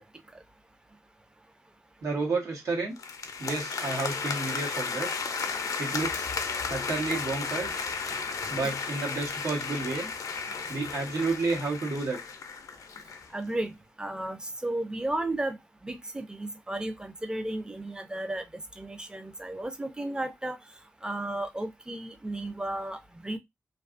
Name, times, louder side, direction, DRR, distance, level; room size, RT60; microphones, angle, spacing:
voice 1, 2.0-3.0 3.4-5.1 5.8-6.3 6.7-7.8 8.5-10.1 10.7-12.2, right 3 dB, 85° right, 1.0 m, -31 dB
sound 1, 3.0-13.3, left 5 dB, 80° left, 0.4 m, -34 dB
voice 2, 13.3-13.7 14.0-18.5 18.8-20.6 21.0-23.4, right 1 dB, 15° right, 0.4 m, -34 dB
2.6 x 2.3 x 2.4 m
wide cardioid pair, 95°, 6 cm